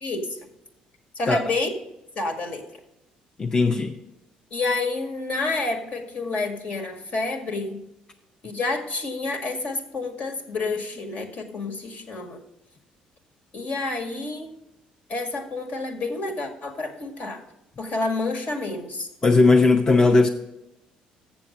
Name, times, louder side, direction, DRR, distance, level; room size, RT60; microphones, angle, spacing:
voice 1, 0.0-0.5 1.2-1.7 2.2-2.6 4.5-7.8 8.4-12.4 13.5-14.5 15.1-17.4 17.8-19.1, left 3 dB, 55° left, 4 dB, 1.8 m, -29 dB
voice 2, 3.4-4.0 19.2-20.3, left 3 dB, 25° left, 3 dB, 0.8 m, -17 dB
7.3 x 7.2 x 6.4 m, 0.90 s
supercardioid pair, 70°, 3 cm